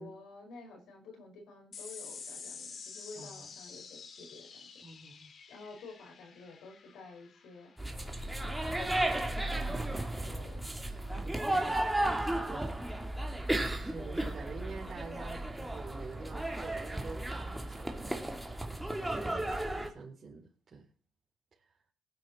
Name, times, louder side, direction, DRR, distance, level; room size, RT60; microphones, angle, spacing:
voice 1, 0.0-4.7 5.5-7.7 8.3-10.6 11.0-11.9 19.1-19.6, left 3 dB, 80° left, 2 dB, 5.3 m, -51 dB
sound 1, 1.7-8.5, left 5 dB, 60° left, 2.2 m, -49 dB
voice 2, 3.2-3.5 4.8-5.3 11.2-11.5 12.4-12.8 13.7-18.7 19.1-19.3 19.6-20.9, right 4 dB, 45° right, -5 dB, 3.8 m, -47 dB
sound 2, 7.8-19.9, right 1 dB, 10° right, 2.6 m, -34 dB
18.5 x 9.9 x 4.4 m, 0.40 s
cardioid pair, 75°, 0 cm